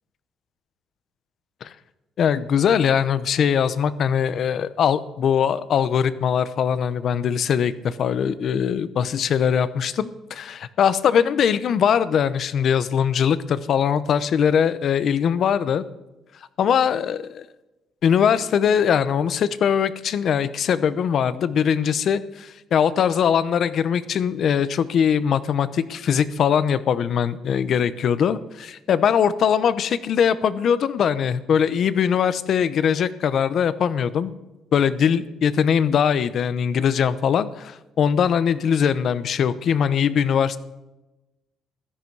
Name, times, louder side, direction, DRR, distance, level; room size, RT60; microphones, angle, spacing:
voice 1, 2.2-15.8 16.6-17.2 18.0-34.3 34.7-40.6, left 8 dB, 50° left, 15 dB, 0.8 m, -21 dB
16.0 x 13.5 x 4.7 m, 1.0 s
cardioid pair, 165°, 0 cm